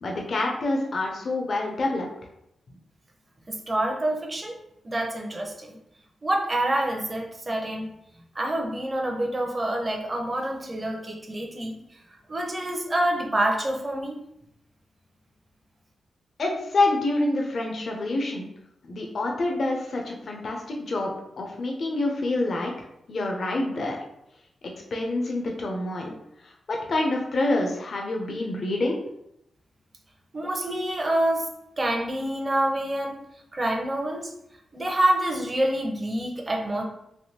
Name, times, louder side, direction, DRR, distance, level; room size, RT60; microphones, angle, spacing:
voice 1, 0.0-2.1 16.4-18.5 18.9-22.7 23.1-24.0 24.9-26.2 26.7-29.0, left 2 dB, 55° left, 1 dB, 0.6 m, -27 dB
voice 2, 3.5-4.6 4.8-5.8 6.2-7.9 8.4-11.8 12.3-14.1 30.3-31.4 31.8-33.2 33.5-34.3 34.7-36.8, right 1 dB, 25° right, 1 dB, 0.6 m, -27 dB
3.4 x 2.6 x 2.8 m, 0.80 s
cardioid pair, 95°, 0 cm